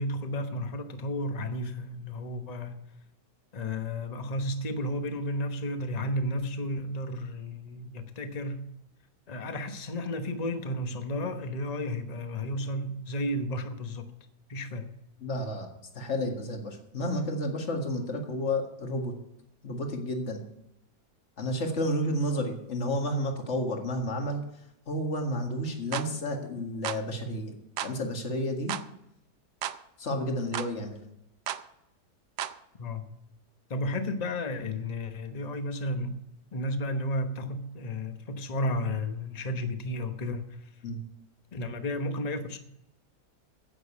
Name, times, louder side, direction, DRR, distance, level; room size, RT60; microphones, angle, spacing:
voice 1, 0.0-2.8 3.5-8.6 9.3-14.1 14.5-14.9 32.8-33.1 33.7-36.2 36.5-40.7 41.5-42.6, left 1 dB, 30° left, 7 dB, 1.0 m, -33 dB
voice 2, 15.2-15.7 15.9-19.1 19.6-20.4 21.4-24.4 24.9-27.5 27.8-28.7 30.0-31.0 40.8-41.0, left 1 dB, 45° left, 3 dB, 2.1 m, -31 dB
sound 1, 25.9-26.1 26.8-27.0 27.8-28.0 28.7-28.9 29.6-29.8 30.5-30.7 31.5-31.6 32.4-32.6, right 11 dB, 85° right, 1.3 m, -33 dB
10.5 x 8.6 x 8.6 m, 0.81 s
omnidirectional pair, 1.8 m